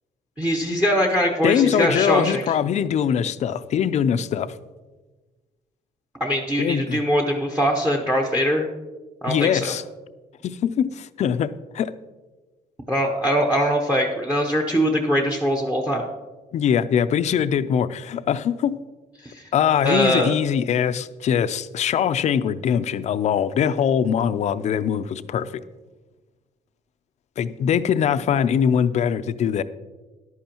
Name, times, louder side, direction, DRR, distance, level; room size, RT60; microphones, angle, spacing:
voice 1, 0.4-2.4 6.2-8.7 9.2-9.7 12.9-16.1 19.2-19.4 19.8-20.3, equal, 10° right, 3 dB, 0.8 m, -22 dB
voice 2, 1.4-4.5 6.6-7.0 9.3-9.8 10.4-11.9 16.5-18.8 19.5-25.5 27.4-29.6, left 8 dB, 50° left, 13 dB, 0.5 m, -22 dB
14.0 x 11.0 x 2.9 m, 1.2 s
cardioid pair, 145°, 16 cm